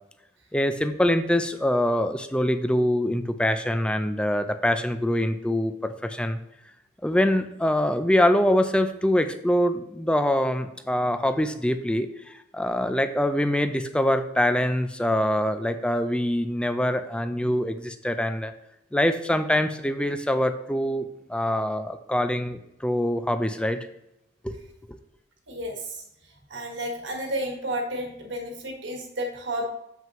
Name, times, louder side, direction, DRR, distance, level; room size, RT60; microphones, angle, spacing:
voice 1, 0.5-6.4 7.0-18.5 18.9-23.8 24.4-24.6 24.9-25.0, left 1 dB, 5° left, 9 dB, 0.4 m, -24 dB
voice 2, 25.5-26.0 26.5-29.7, right 1 dB, 65° right, 2 dB, 1.5 m, -31 dB
7.4 x 5.7 x 3.0 m, 0.85 s
head